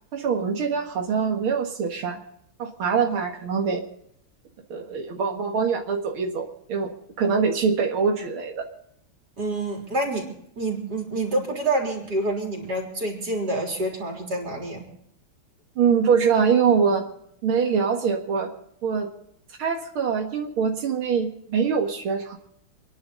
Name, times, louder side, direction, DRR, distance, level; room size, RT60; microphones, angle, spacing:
voice 1, 0.1-2.2 2.6-3.8 4.7-6.9 7.2-8.7 15.8-17.0 17.4-18.5 18.8-19.1 19.6-22.4, right 6 dB, 85° right, 2 dB, 2.5 m, -23 dB
voice 2, 9.4-10.3 10.6-14.8, right 2 dB, 50° right, -1 dB, 4.3 m, -27 dB
27.5 x 11.0 x 3.9 m, 0.72 s
omnidirectional pair, 2.2 m